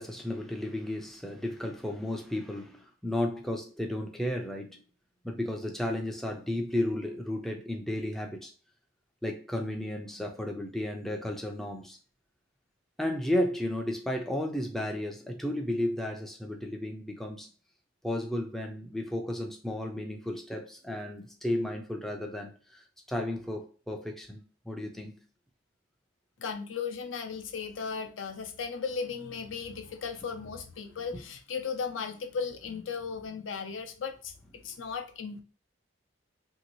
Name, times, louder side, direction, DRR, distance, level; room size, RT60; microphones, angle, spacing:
voice 1, 0.0-4.8 5.2-8.5 9.2-12.0 13.0-17.5 18.0-25.2, left 1 dB, ahead, 0.3 m, -33 dB
voice 2, 26.4-34.3 34.6-35.4, left 5 dB, 75° left, 0.5 m, -36 dB
3.0 x 2.7 x 2.9 m
head